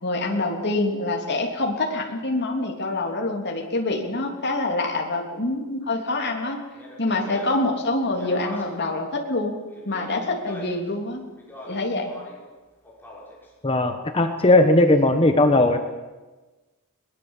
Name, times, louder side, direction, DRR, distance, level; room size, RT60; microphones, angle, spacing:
voice 1, 0.0-6.6 7.0-9.5 9.8-11.2 11.7-12.1, left 2 dB, 50° left, 1 dB, 3.2 m, -26 dB
Speech, 6.7-8.9 9.7-10.9 11.4-12.5 12.8-13.5, left 1 dB, 10° left, 6.0 m, -42 dB
voice 2, 13.6-15.8, left 2 dB, 25° left, 6 dB, 1.2 m, -17 dB
21.5 x 21.0 x 7.3 m, 1.2 s
head